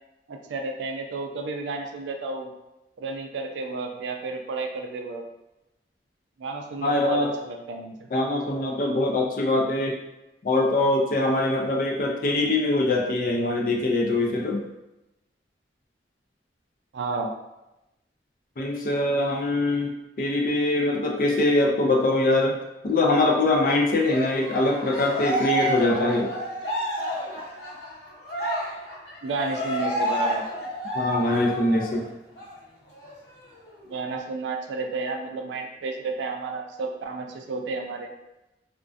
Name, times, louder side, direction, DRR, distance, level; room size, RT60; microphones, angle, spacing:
voice 1, 0.3-2.5 3.0-5.2 6.4-8.1 16.9-17.3 29.2-30.4 33.9-38.1, right 3 dB, 90° right, 4 dB, 0.3 m, -32 dB
voice 2, 6.8-7.3 8.1-10.0 10.4-14.6 18.6-19.9 20.2-22.6 22.8-26.3 30.9-32.1, left 2 dB, 50° left, 0 dB, 0.4 m, -23 dB
Cheering, 24.0-32.0 32.4-32.5 32.9-33.9, right 1 dB, 85° left, 0.8 m, -30 dB
2.4 x 2.1 x 2.4 m, 0.95 s
head